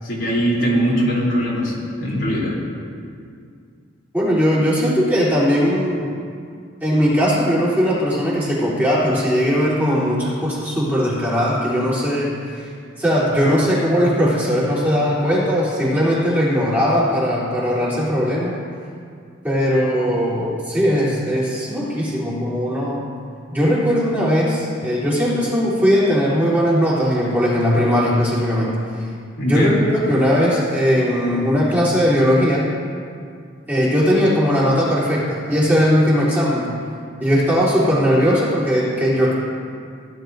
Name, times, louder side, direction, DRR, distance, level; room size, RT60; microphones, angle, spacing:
voice 1, 0.0-2.5 29.4-29.8, equal, 70° left, -6 dB, 3.0 m, -21 dB
voice 2, 4.1-6.2 6.8-12.7 13.0-18.5 19.4-23.1 23.5-28.8 29.5-32.7 33.7-36.7 37.2-39.3, equal, 10° right, -10 dB, 3.3 m, -19 dB
17.0 x 11.0 x 2.7 m, 2.3 s
head